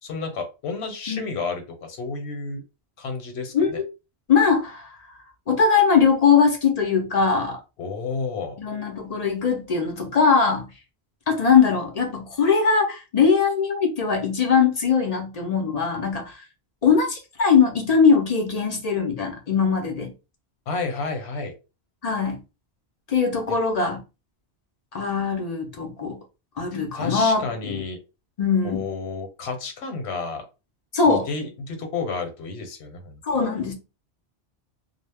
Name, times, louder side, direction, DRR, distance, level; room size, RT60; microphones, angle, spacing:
voice 1, 0.0-2.6 3.0-3.8 7.8-8.6 20.7-21.5 23.5-23.6 26.7-28.0 28.6-30.5 31.0-33.2 33.7-33.8, left 4 dB, 80° left, 1.0 m, -31 dB
voice 2, 3.5-3.9 4.3-5.0 5.5-7.6 8.6-10.7 11.3-16.4 16.8-20.1 22.0-22.4 23.1-24.0 24.9-26.2 26.6-27.8 28.4-28.9 30.9-31.3 33.2-33.7, left 5 dB, 50° left, 0.5 m, -21 dB
2.1 x 2.0 x 3.2 m
omnidirectional pair, 1.1 m